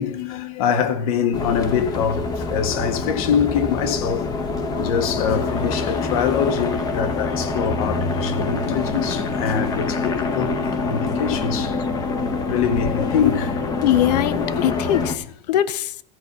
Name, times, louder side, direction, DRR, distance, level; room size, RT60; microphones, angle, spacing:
voice 1, 0.0-4.3 4.8-10.5 10.9-11.7 12.5-13.7 14.6-14.7, left 7 dB, 60° left, 1.6 m, -24 dB
sound 1, 1.3-15.2, left 3 dB, 20° left, 0.9 m, -25 dB
voice 2, 13.8-16.0, left 12 dB, 85° left, 0.7 m, -21 dB
14.5 x 5.7 x 8.0 m
supercardioid pair, 170°, 21 cm